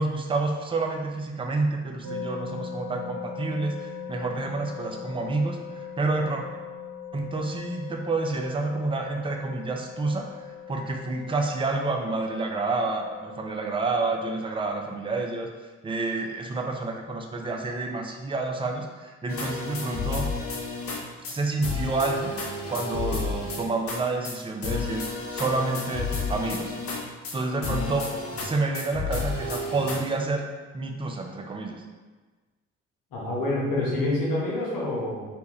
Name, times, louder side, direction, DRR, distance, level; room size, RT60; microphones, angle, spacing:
voice 1, 0.0-6.4 7.1-15.5 15.8-20.3 21.3-22.3 22.7-25.0 25.3-26.7 27.3-30.4 30.7-31.8, right 3 dB, 15° right, 2 dB, 0.4 m, -29 dB
sound 1, 2.0-14.4, left 6 dB, 55° right, 0.9 m, -40 dB
sound 2, 19.3-21.0 21.2-21.4 21.6-24.0 24.2-24.4 24.6-27.4 27.6-28.5 28.7-30.0, left 3 dB, 40° left, 0.6 m, -31 dB
voice 2, 33.1-35.3, left 2 dB, 65° left, -4 dB, 0.9 m, -27 dB
2.8 x 2.2 x 3.0 m, 1.3 s
figure-of-eight pair, 40°, 37 cm